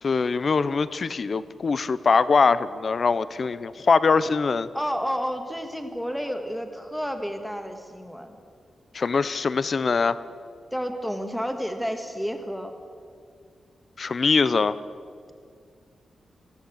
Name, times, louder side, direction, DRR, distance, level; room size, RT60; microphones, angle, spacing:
voice 1, 0.0-4.7 8.9-10.2 14.0-14.7, left 4 dB, 35° left, 16 dB, 0.6 m, -22 dB
voice 2, 4.7-8.4 10.7-12.7, equal, ahead, 5 dB, 1.6 m, -30 dB
20.0 x 16.0 x 8.5 m, 2.2 s
wide cardioid pair, 180°, 0 cm